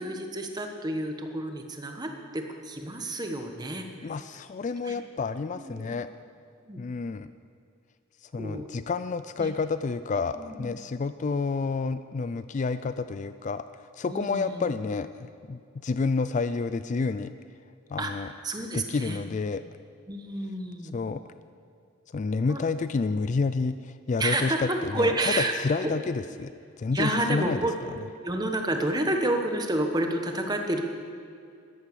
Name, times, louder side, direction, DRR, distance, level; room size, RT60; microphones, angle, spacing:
voice 1, 0.0-3.9 4.8-5.0 5.6-6.0 6.6-6.8 8.4-8.7 9.4-9.5 10.2-10.7 14.1-14.7 18.0-19.2 20.1-20.9 22.5-22.6 24.2-25.5 25.8-26.0 26.9-27.9 28.2-30.8, right 1 dB, 20° right, 4 dB, 1.2 m, -30 dB
voice 2, 4.0-6.1 6.8-7.3 8.2-17.3 17.9-18.3 18.7-19.6 20.9-21.2 22.1-26.5 26.8-27.6, left 4 dB, 35° left, 12 dB, 0.3 m, -29 dB
14.5 x 11.5 x 6.8 m, 2.3 s
head